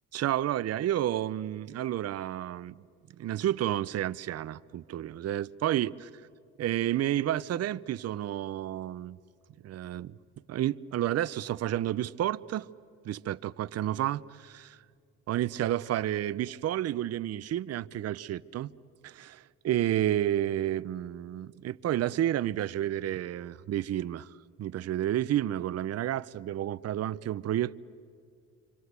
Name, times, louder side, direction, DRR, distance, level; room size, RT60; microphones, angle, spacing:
voice 1, 0.1-2.8 3.2-5.9 6.6-9.2 9.6-10.2 10.5-12.7 13.0-14.8 15.3-18.7 19.0-24.3 24.6-27.8, right 12 dB, 55° right, 0.6 m, -30 dB
27.5 x 24.5 x 8.1 m
cardioid pair, 90°, 30 cm